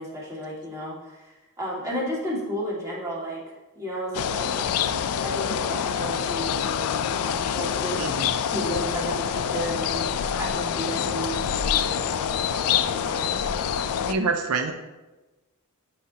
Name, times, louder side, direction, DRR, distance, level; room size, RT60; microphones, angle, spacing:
voice 1, 0.0-3.4 3.8-4.7 5.2-8.0 8.4-13.3, equal, 15° right, -6 dB, 2.0 m, -33 dB
sound 1, 4.1-14.1, left 8 dB, 75° left, 0.4 m, -26 dB
voice 2, 8.0-8.4 14.1-14.7, right 4 dB, 80° right, 6 dB, 0.6 m, -26 dB
10.0 x 5.3 x 2.8 m, 1.1 s
head